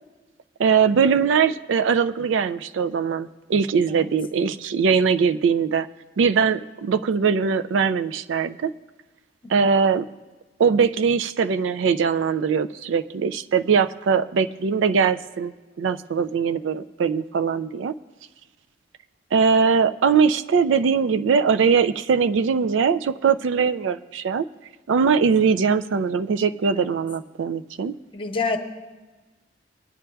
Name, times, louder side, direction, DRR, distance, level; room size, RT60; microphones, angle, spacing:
voice 1, 0.6-5.9 6.2-8.7 9.5-10.1 10.6-17.9 19.3-24.4 24.9-28.0, right 6 dB, 90° right, 11 dB, 0.4 m, -21 dB
voice 2, 28.1-28.6, left 4 dB, 30° left, 4 dB, 0.9 m, -27 dB
21.5 x 9.7 x 2.3 m, 1.3 s
head